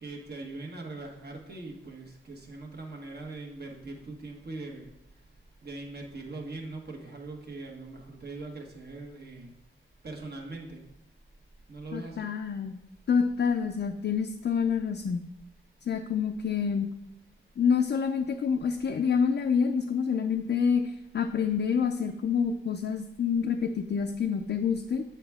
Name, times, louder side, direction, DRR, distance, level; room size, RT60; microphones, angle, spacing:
voice 1, 0.0-4.9 5.6-9.5 10.0-10.8 11.7-12.3, right 2 dB, 50° right, 1 dB, 1.3 m, -41 dB
voice 2, 11.9-12.8 13.1-15.2 15.9-16.9 17.6-25.0, left 6 dB, 55° left, 4 dB, 0.4 m, -27 dB
8.0 x 4.4 x 3.5 m, 0.89 s
wide cardioid pair, 95°, 21 cm